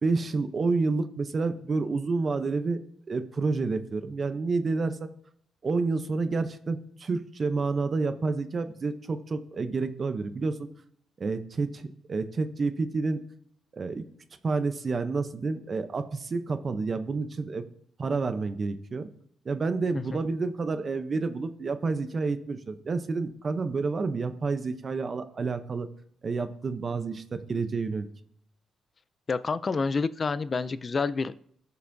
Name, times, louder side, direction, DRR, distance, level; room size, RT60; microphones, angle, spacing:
voice 1, 0.0-2.8 3.1-5.1 5.6-10.7 11.2-13.2 13.7-14.0 14.4-17.6 18.0-19.1 19.5-25.9 26.2-28.1, right 4 dB, 30° right, 9 dB, 0.6 m, -29 dB
voice 2, 29.3-31.5, left 4 dB, 25° left, 15 dB, 0.3 m, -29 dB
17.5 x 6.9 x 2.6 m, 0.67 s
cardioid pair, 160°, 0 cm